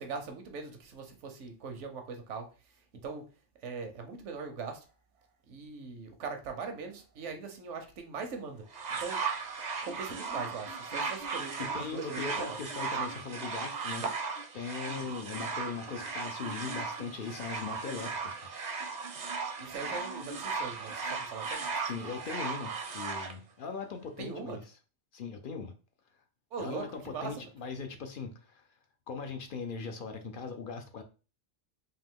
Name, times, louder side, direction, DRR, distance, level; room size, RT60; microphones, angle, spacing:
voice 1, 0.0-2.5 3.0-3.2 3.6-4.8 5.5-8.6 9.0-9.3 9.8-12.6 15.0-15.1 19.6-21.7 24.2-24.6 26.5-27.3, right 5 dB, 75° right, 1.1 m, -41 dB
sound 1, 8.7-23.3 24.2-24.3, right 4 dB, 45° right, 0.6 m, -36 dB
voice 2, 11.6-14.1 14.5-18.5 21.9-24.8 25.1-25.7 26.6-28.6 29.1-31.0, left 5 dB, 60° left, 0.6 m, -40 dB
3.6 x 2.8 x 3.5 m
omnidirectional pair, 1.2 m